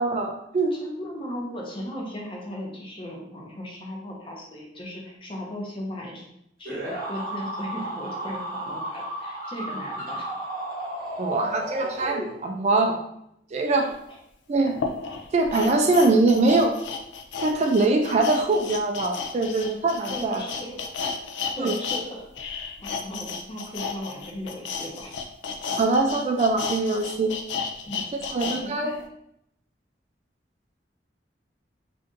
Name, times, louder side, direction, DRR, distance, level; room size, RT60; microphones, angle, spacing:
voice 1, 0.0-0.7 11.2-13.0 13.5-13.9 14.5-14.8 15.3-16.7 17.4-20.4 21.6-21.7 25.8-27.3 28.3-28.9, right 3 dB, 40° right, 3 dB, 0.3 m, -22 dB
voice 2, 0.7-6.3 6.6-10.3 13.6-13.8 14.1-14.2 19.4-19.6 20.1-20.8 21.5-22.5 22.8-25.2 27.8-29.0, equal, 30° left, -2 dB, 0.7 m, -37 dB
sound 1, 6.6-12.7, right 1 dB, 55° right, 1.0 m, -33 dB
sound 2, 13.9-14.0 14.7-22.0 22.3-28.6 29.0-29.1, left 5 dB, 85° left, 0.4 m, -33 dB
2.6 x 2.6 x 3.6 m, 0.77 s
head